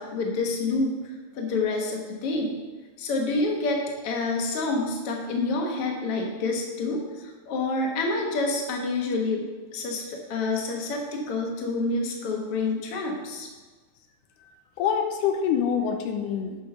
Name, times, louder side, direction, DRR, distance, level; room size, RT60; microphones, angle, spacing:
voice 1, 0.0-2.5 3.0-7.0 7.5-9.4 9.7-13.5, left 3 dB, 55° left, 1 dB, 2.0 m, -28 dB
voice 2, 14.8-16.6, left 7 dB, 90° left, 5 dB, 2.2 m, -25 dB
10.5 x 5.0 x 5.7 m, 1.3 s
omnidirectional pair, 3.6 m